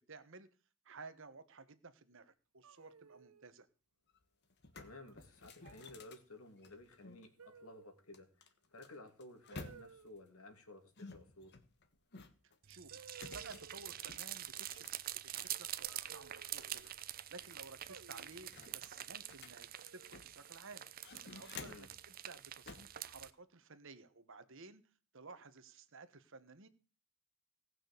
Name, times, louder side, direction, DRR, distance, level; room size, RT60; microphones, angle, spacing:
voice 1, 0.1-0.5 0.8-3.7 12.7-16.9 17.3-19.7 19.9-20.8 21.2-24.8 25.1-26.7, right 3 dB, 60° right, 1.2 m, -55 dB
sound 1, 2.6-3.5 4.8-5.1 5.6-6.0 7.4-8.0 9.5-10.1 12.0-12.1 12.9-13.9 15.8-16.9 17.9-18.5 19.7-20.3, right 5 dB, 80° right, 0.9 m, -58 dB
sound 2, 4.1-4.2 4.5-7.3 8.1-10.2 11.0-12.6 13.1-15.6 16.0-17.1 17.4-17.5 17.9-20.5 20.9-22.0 22.7-23.0, left 3 dB, 50° left, 1.3 m, -54 dB
voice 2, 4.7-11.5 21.6-21.9, left 2 dB, 75° left, 2.6 m, -55 dB
sound 3, 12.6-23.3, right 12 dB, 40° right, 0.6 m, -46 dB
17.5 x 6.2 x 6.7 m
head